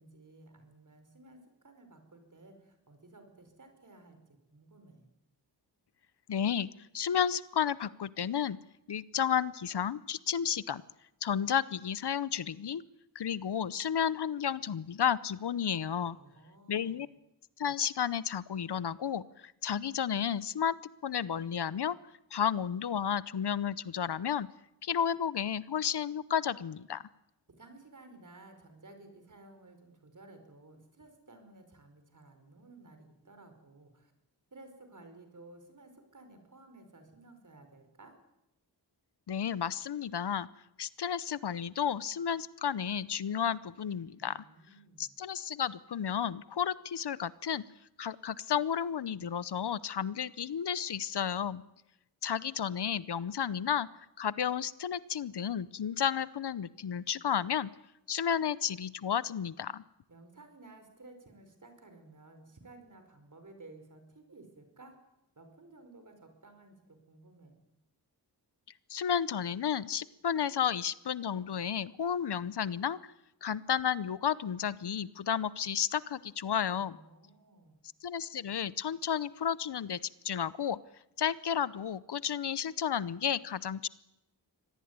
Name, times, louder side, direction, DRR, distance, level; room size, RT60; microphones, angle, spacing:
voice 1, 0.0-4.2 4.5-5.1 16.1-17.0 27.5-34.1 34.5-38.2 44.2-45.1 60.1-65.0 65.4-67.6 76.7-77.8, right 2 dB, 50° right, 7 dB, 5.0 m, -55 dB
voice 2, 6.3-6.7 6.9-8.6 8.9-10.8 11.2-12.8 13.1-16.2 16.7-17.1 17.6-20.7 21.0-22.0 22.3-24.5 24.8-27.0 39.3-40.5 40.8-44.4 45.0-47.6 48.0-51.6 52.2-53.9 54.2-57.7 58.1-59.8 68.9-73.0 73.4-77.0 78.0-80.0 80.2-80.8 81.2-83.9, left 8 dB, 75° left, 18 dB, 0.8 m, -32 dB
24.5 x 18.0 x 9.6 m, 0.92 s
wide cardioid pair, 120°, 41 cm